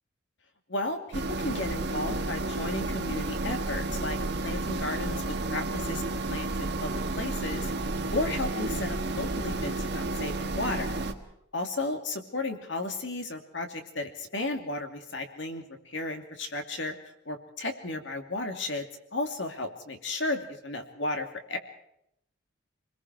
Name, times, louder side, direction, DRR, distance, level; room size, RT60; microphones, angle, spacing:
sound 1, 1.1-11.1, right 2 dB, 55° right, 1.6 m, -31 dB
voice 1, 1.4-6.0 6.3-7.7 8.1-11.0 11.5-18.9 19.1-21.6, left 2 dB, 65° left, 4 dB, 2.7 m, -34 dB
27.5 x 21.0 x 4.7 m, 0.78 s
head